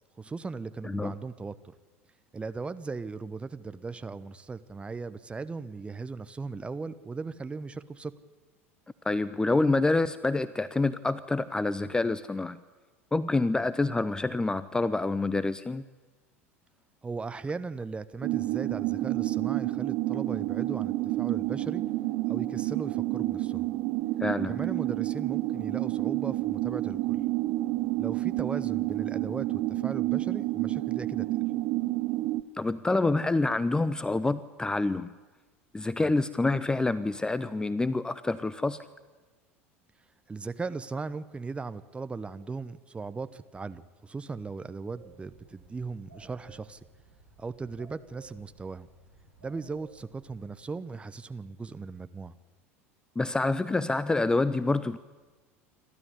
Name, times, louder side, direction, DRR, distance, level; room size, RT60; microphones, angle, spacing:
voice 1, 0.2-1.6 2.3-8.1 13.6-13.7 17.0-21.8 22.3-23.7 24.5-27.2 28.0-31.3 36.0-36.1 40.3-46.8 47.4-48.9 49.4-52.3, right 4 dB, 15° right, 12 dB, 1.0 m, -38 dB
voice 2, 9.0-12.6 13.1-15.8 24.2-24.6 32.6-35.1 35.7-38.8 53.2-55.0, left 3 dB, 10° left, 16 dB, 0.7 m, -27 dB
sound 1, 18.2-32.4, right 17 dB, 50° right, 0.9 m, -29 dB
sound 2, 44.9-50.5, right 3 dB, 85° right, 7.1 m, -56 dB
28.0 x 13.0 x 9.8 m, 1.3 s
figure-of-eight pair, 75°, 7 cm